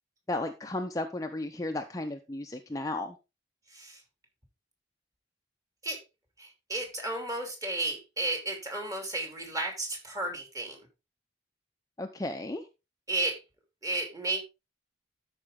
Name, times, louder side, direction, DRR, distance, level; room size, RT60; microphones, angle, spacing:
voice 1, 0.3-3.2 12.0-12.6, left 2 dB, 20° left, 0.7 m, -34 dB
voice 2, 6.4-10.8 13.1-13.4 13.8-14.4, right 2 dB, 20° right, 2.8 m, -33 dB
12.5 x 5.2 x 3.7 m
head